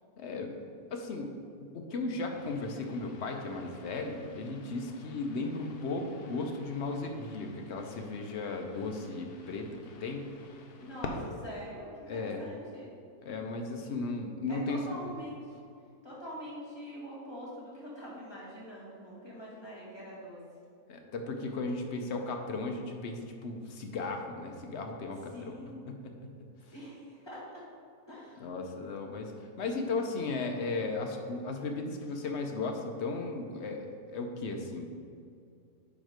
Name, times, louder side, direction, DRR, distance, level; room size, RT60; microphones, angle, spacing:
voice 1, 0.2-0.6 0.9-9.7 10.0-10.4 12.1-12.4 13.2-14.9 20.9-25.5 25.9-26.1 28.4-34.9, left 3 dB, 55° left, 3 dB, 0.8 m, -36 dB
sound 1, 2.3-11.3, left 3 dB, 90° left, 1.3 m, -48 dB
voice 2, 10.8-12.9 14.5-15.5 16.0-20.4 25.3-25.9 26.7-27.6 28.1-28.5, equal, 15° left, -7 dB, 1.7 m, -44 dB
8.6 x 3.2 x 5.0 m, 2.5 s
omnidirectional pair, 1.6 m